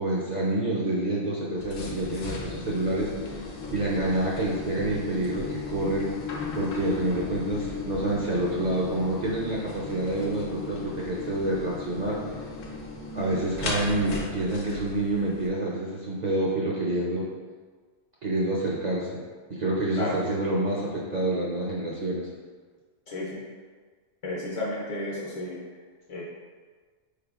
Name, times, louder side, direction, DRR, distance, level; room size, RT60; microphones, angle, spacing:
voice 1, 0.0-3.4 3.7-6.1 6.5-12.2 13.1-17.3 18.2-19.2 19.5-22.3, right 1 dB, 55° right, -6 dB, 0.5 m, -28 dB
sound 1, 1.6-15.5, left 4 dB, 75° left, 0.9 m, -36 dB
voice 2, 23.1-23.4 24.2-25.6 26.1-26.2, left 2 dB, 45° left, -5 dB, 0.4 m, -32 dB
4.3 x 3.3 x 2.3 m, 1.5 s
omnidirectional pair, 1.2 m